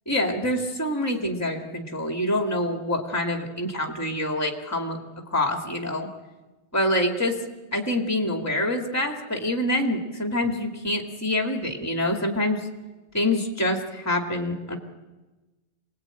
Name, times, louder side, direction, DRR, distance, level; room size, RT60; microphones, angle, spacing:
voice 1, 0.1-5.0 5.3-6.1 6.7-7.4 7.7-12.7 13.1-14.8, left 1 dB, 10° left, 3 dB, 2.2 m, -26 dB
27.0 x 20.0 x 8.9 m, 1.2 s
omnidirectional pair, 1.4 m